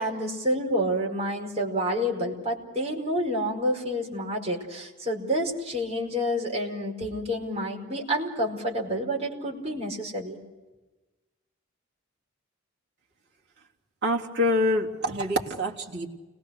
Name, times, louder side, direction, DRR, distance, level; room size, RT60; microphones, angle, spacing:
voice 1, 0.0-10.4, equal, 30° right, 0 dB, 5.0 m, -29 dB
voice 2, 14.0-16.1, left 1 dB, 55° right, -2 dB, 3.3 m, -26 dB
29.5 x 20.5 x 6.6 m, 1.1 s
head